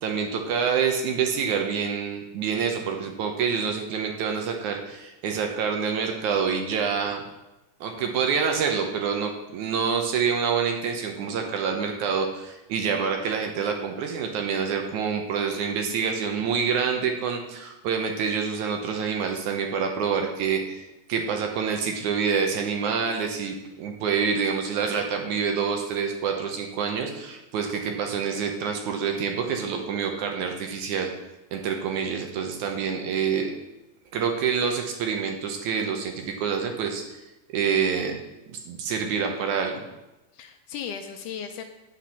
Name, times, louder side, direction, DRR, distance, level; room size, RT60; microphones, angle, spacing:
voice 1, 0.0-7.2 7.8-20.8 21.1-31.1 31.5-33.5 34.1-37.2 37.5-38.2 38.5-39.9, right 6 dB, 70° right, 3 dB, 2.1 m, -27 dB
voice 2, 15.8-16.2 40.3-41.6, left 7 dB, 80° left, 5 dB, 2.0 m, -37 dB
9.0 x 6.0 x 5.8 m, 0.99 s
omnidirectional pair, 3.9 m